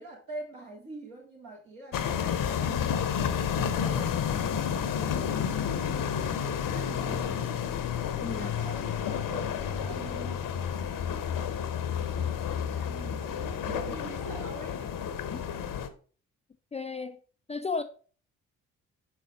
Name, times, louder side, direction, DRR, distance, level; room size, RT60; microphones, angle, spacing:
voice 1, 0.0-4.2 4.5-7.6 8.2-10.4 12.1-15.0, right 2 dB, 60° right, 3.8 m, -45 dB
sound 1, 1.9-15.9, left 8 dB, 55° left, 0.9 m, -30 dB
voice 2, 8.2-8.5 15.3-15.4 16.7-17.2 17.5-17.8, left 4 dB, 15° left, 0.4 m, -33 dB
6.0 x 5.4 x 4.1 m
figure-of-eight pair, 40°, 39 cm